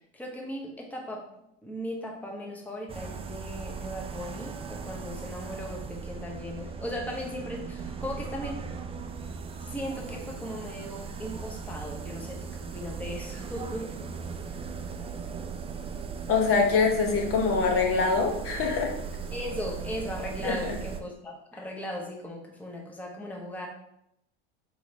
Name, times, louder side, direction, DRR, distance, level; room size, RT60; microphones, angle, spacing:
voice 1, 0.1-1.3 1.6-8.7 9.2-9.3 9.6-14.0 14.3-14.6 19.3-23.7, equal, 5° left, -1 dB, 0.9 m, -38 dB
sound 1, 2.9-21.0, right 5 dB, 20° right, 0.4 m, -38 dB
voice 2, 16.3-18.9 20.4-20.7, left 4 dB, 45° left, 2 dB, 0.9 m, -24 dB
3.9 x 2.9 x 4.2 m, 0.79 s
supercardioid pair, 95°, 30 cm